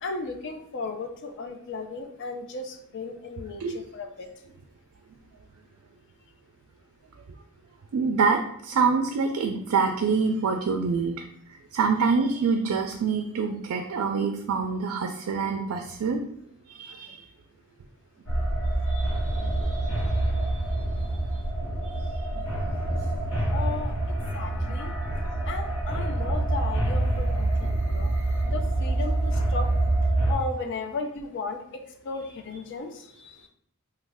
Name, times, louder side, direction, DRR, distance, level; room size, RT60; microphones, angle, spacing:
voice 1, 0.0-4.3 23.5-24.9 25.4-28.1 28.4-29.7 30.3-33.5, left 3 dB, 55° left, 4 dB, 0.4 m, -35 dB
voice 2, 7.9-11.2 11.7-16.2 16.7-17.2 18.9-20.6 22.3-22.4 24.7-24.8, right 5 dB, 70° right, 4 dB, 0.3 m, -26 dB
sound 1, 18.3-30.3, right 1 dB, 75° left, 0.9 m, -26 dB
3.1 x 2.3 x 3.4 m, 0.70 s
head